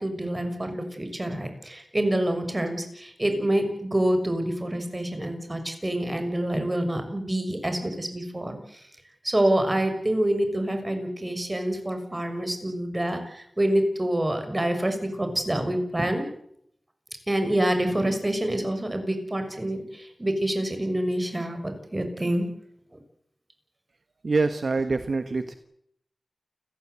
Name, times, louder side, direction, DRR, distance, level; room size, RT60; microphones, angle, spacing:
voice 1, 0.0-8.8 9.2-16.2 17.3-22.5, right 1 dB, 30° right, 6 dB, 6.5 m, -27 dB
voice 2, 24.2-25.6, right 3 dB, 75° right, 9 dB, 1.3 m, -25 dB
29.5 x 15.5 x 8.3 m, 0.72 s
cardioid pair, 45°, 0 cm